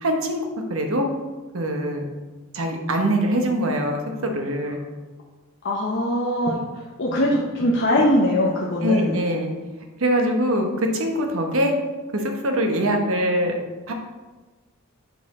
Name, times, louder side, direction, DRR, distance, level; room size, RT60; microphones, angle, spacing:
voice 1, 0.0-0.4 0.7-1.1 1.5-2.0 2.5-4.8 8.8-9.5 10.0-11.7 12.1-13.5 13.9-14.0, equal, 80° right, 3 dB, 1.0 m, -23 dB
voice 2, 5.6-6.6 7.0-9.2, left 1 dB, 60° left, -4 dB, 0.7 m, -21 dB
6.8 x 4.2 x 3.7 m, 1.2 s
head